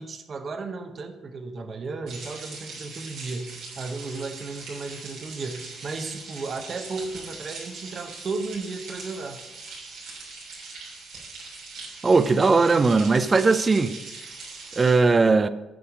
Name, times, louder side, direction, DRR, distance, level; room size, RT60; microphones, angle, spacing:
voice 1, 0.0-9.4, right 3 dB, 50° right, 0.9 m, -35 dB
sound 1, 2.1-15.0, right 3 dB, 90° right, 3.2 m, -41 dB
voice 2, 12.0-13.9 14.8-15.5, right 4 dB, 30° right, 0.4 m, -19 dB
8.6 x 5.6 x 4.9 m
cardioid pair, 90°, 0 cm